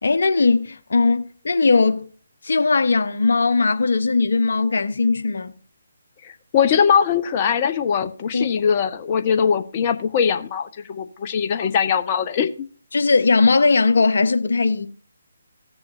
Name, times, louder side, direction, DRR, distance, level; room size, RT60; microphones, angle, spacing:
voice 1, 0.0-2.1 2.4-5.5 8.3-8.5 11.6-11.7 12.9-14.9, left 4 dB, 60° left, 1.0 m, -19 dB
voice 2, 6.2-12.7, left 7 dB, 30° left, 0.9 m, -21 dB
17.0 x 6.9 x 2.6 m
figure-of-eight pair, 145°, 0 cm